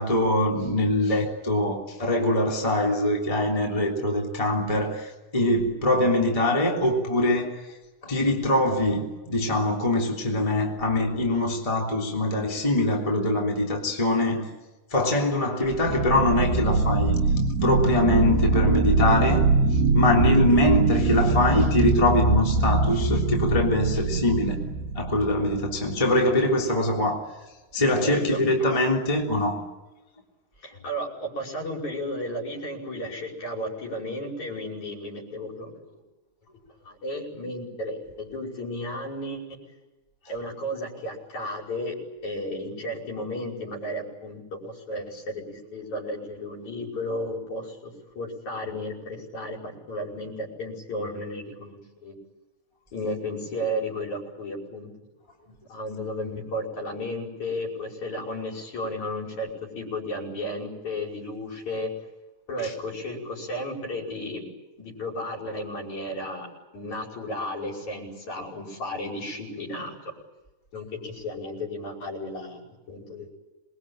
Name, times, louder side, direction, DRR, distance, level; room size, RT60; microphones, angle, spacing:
voice 1, 0.0-7.7 8.0-14.5 14.9-17.2 17.6-24.6 24.9-27.3 27.7-29.6 62.6-62.7, left 1 dB, 10° left, 2.9 m, -23 dB
sound 1, 10.8-11.4 15.7-25.9, right 3 dB, 90° right, 3.9 m, -23 dB
voice 2, 28.0-28.4 30.6-36.0 36.9-39.6 40.3-42.0 42.2-52.1 52.9-54.9 55.7-61.9 62.5-64.5 64.8-66.5 66.7-70.0 70.7-73.3, left 1 dB, 45° left, 6.7 m, -33 dB
27.5 x 21.5 x 9.0 m
omnidirectional pair, 4.5 m